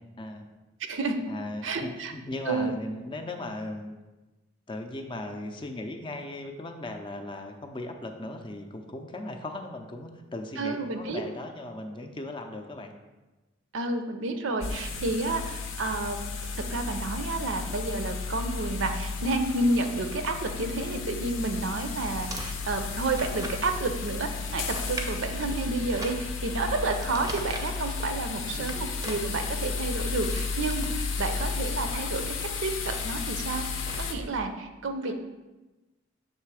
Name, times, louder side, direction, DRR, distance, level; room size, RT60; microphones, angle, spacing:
voice 1, 0.2-0.5 1.3-4.0 4.7-12.9 25.1-25.2 28.4-28.8 35.0-35.1, left 2 dB, 25° left, 5 dB, 0.5 m, -38 dB
voice 2, 0.9-1.2 1.6-2.1 2.5-2.7 10.6-11.2 13.7-16.2 16.5-32.4 32.6-33.7 34.0-35.1, right 3 dB, 70° right, 6 dB, 0.6 m, -30 dB
sound 1, 14.6-34.1, left 5 dB, 80° left, 0.7 m, -33 dB
sound 2, 22.1-34.0, right 1 dB, 20° right, 0.6 m, -43 dB
6.7 x 3.2 x 4.8 m, 1.1 s
head